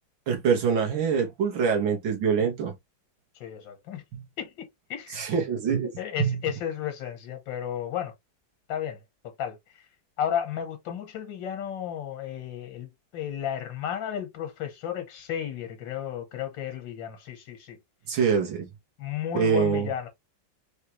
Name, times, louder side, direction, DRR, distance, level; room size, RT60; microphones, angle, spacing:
voice 1, 0.3-2.7 4.1-4.2 5.1-5.9 6.2-6.4 18.1-18.7 19.3-19.9, right 6 dB, 90° right, 2.1 m, -24 dB
voice 2, 3.3-4.0 4.4-5.2 6.0-8.1 8.7-9.0 9.4-9.8 10.2-17.8 19.0-20.1, left 9 dB, 80° left, 1.9 m, -33 dB
4.6 x 3.3 x 3.1 m
omnidirectional pair, 2.0 m